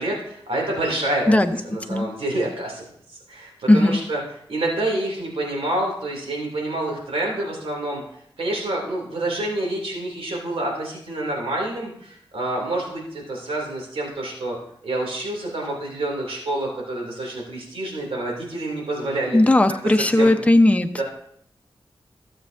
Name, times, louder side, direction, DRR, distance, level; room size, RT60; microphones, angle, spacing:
voice 1, 0.0-1.4 1.6-4.2 4.5-8.0 8.4-14.6 14.8-19.4 19.9-20.3 21.0-21.1, right 1 dB, 75° right, -1 dB, 2.7 m, -27 dB
voice 2, 19.3-21.0, left 1 dB, 15° left, 7 dB, 0.8 m, -17 dB
13.0 x 7.5 x 2.6 m, 0.68 s
cardioid pair, 40°, 10 cm